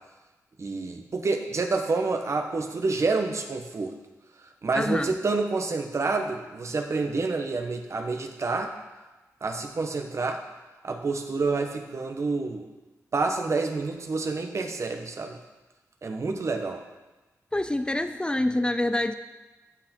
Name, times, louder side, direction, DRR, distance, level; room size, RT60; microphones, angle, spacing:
voice 1, 0.6-3.9 4.6-8.7 9.4-10.4 10.8-12.7 13.1-15.4 16.0-16.8, right 3 dB, 50° right, 5 dB, 1.2 m, -28 dB
voice 2, 4.7-5.2 17.5-19.2, left 1 dB, 15° left, 10 dB, 0.5 m, -26 dB
15.0 x 5.7 x 4.5 m, 1.1 s
cardioid pair, 65°, 6 cm